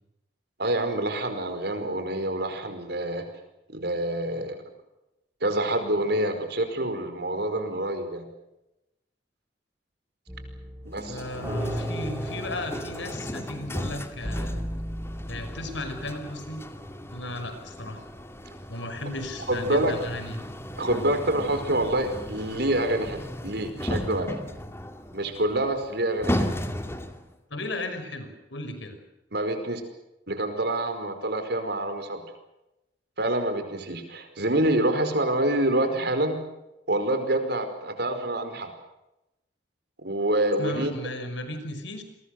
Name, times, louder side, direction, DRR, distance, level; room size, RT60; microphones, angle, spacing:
voice 1, 0.6-3.2 3.7-4.6 5.4-8.3 10.8-11.2 19.5-19.9 20.8-24.4 25.1-26.5 29.3-29.8 30.3-32.2 33.2-36.4 36.9-38.7 40.0-40.9, right 1 dB, 60° right, 8 dB, 5.0 m, -27 dB
sound 1, 10.3-16.1, equal, 10° right, 3.7 m, -35 dB
sound 2, 10.9-27.3, left 1 dB, 15° left, 2.2 m, -36 dB
voice 2, 11.1-14.6 15.3-16.6 17.0-18.0 18.7-20.4 27.5-29.0 40.6-42.0, left 1 dB, 85° left, 7 dB, 5.6 m, -35 dB
29.0 x 22.5 x 6.7 m, 0.91 s
head